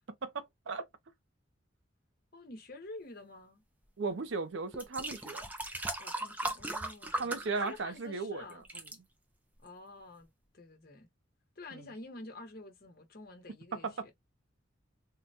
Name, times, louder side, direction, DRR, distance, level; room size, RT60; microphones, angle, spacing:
voice 1, 0.2-0.9 4.0-5.5 7.2-8.4 11.7-11.8 13.7-14.1, right 4 dB, 65° right, 0.6 m, -36 dB
voice 2, 2.3-3.6 6.0-7.3 7.6-8.7 9.6-10.3 10.5-11.1 11.6-14.1, left 2 dB, 50° left, 0.9 m, -49 dB
sound 1, 4.1-4.2 4.7-8.2 8.5-9.0 9.7-9.8, right 1 dB, 10° right, 0.4 m, -38 dB
3.7 x 2.2 x 2.6 m
head